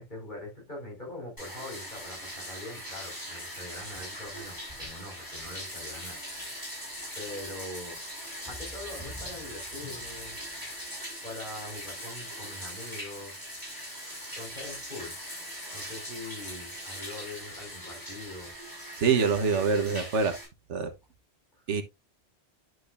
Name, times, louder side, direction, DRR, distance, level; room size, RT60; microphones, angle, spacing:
voice 1, 0.0-6.2 7.2-8.0 8.4-10.9 11.2-13.4 14.3-15.2 15.7-18.5, left 1 dB, 40° left, 5.5 m, -43 dB
Bathtub (filling or washing), 1.4-20.5, equal, 15° left, 5.6 m, -41 dB
voice 2, 19.0-20.4 20.7-20.9 21.7-21.8, right 5 dB, 85° right, 1.5 m, -25 dB
10.5 x 6.4 x 2.5 m
omnidirectional pair, 1.2 m